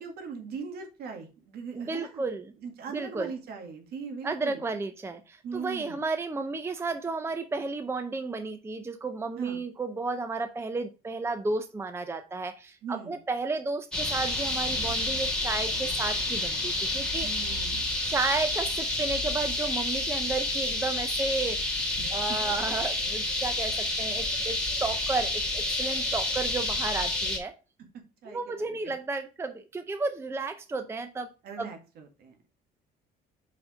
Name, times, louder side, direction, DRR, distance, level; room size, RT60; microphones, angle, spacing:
voice 1, 0.0-2.3 2.6-4.6 5.4-6.0 9.4-9.6 12.8-13.2 17.2-17.9 22.0-22.5 27.9-28.8 31.4-32.4, right 5 dB, 70° right, 4 dB, 1.8 m, -40 dB
voice 2, 1.7-2.5 2.9-3.3 4.2-17.3 18.0-21.6 22.1-27.5 28.3-31.3 31.6-31.7, right 3 dB, 15° right, 8 dB, 0.6 m, -32 dB
sound 1, 13.9-27.4, left 2 dB, 5° left, 1.9 m, -29 dB
5.2 x 4.8 x 4.9 m, 0.32 s
cardioid pair, 110°, 17 cm